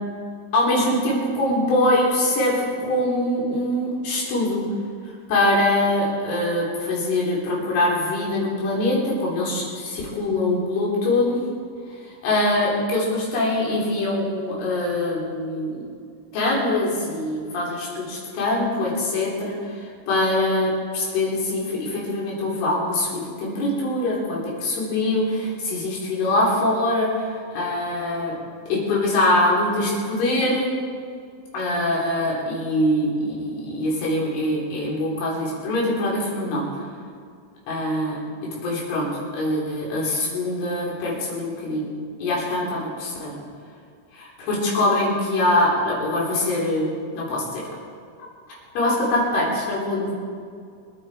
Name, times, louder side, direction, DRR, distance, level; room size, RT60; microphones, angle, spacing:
voice 1, 0.5-4.6 5.3-11.4 12.0-15.9 16.3-28.4 28.7-30.7 31.5-36.6 37.7-39.1 39.3-41.9 42.2-43.3 44.1-46.9 47.1-47.6 48.8-50.1, left 1 dB, 75° left, -4 dB, 6.3 m, -23 dB
26.0 x 10.5 x 4.5 m, 2.2 s
omnidirectional pair, 5.7 m